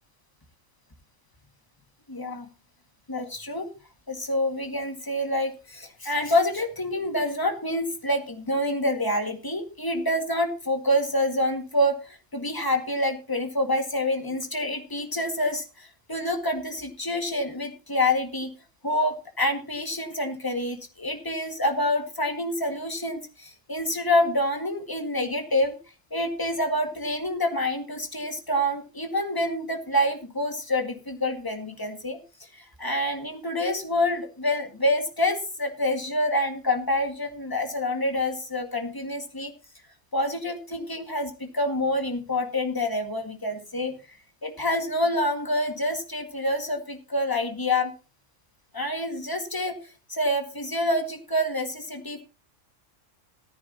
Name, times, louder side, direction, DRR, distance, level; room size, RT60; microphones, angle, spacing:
voice 1, 2.1-2.5 3.1-3.7 4.1-18.5 18.8-25.8 26.1-32.2 32.6-39.5 40.1-44.0 44.4-47.9 48.7-49.8 50.1-52.2, left 1 dB, 15° left, 4 dB, 1.9 m, -27 dB
14.5 x 14.0 x 2.9 m, 0.33 s
omnidirectional pair, 1.3 m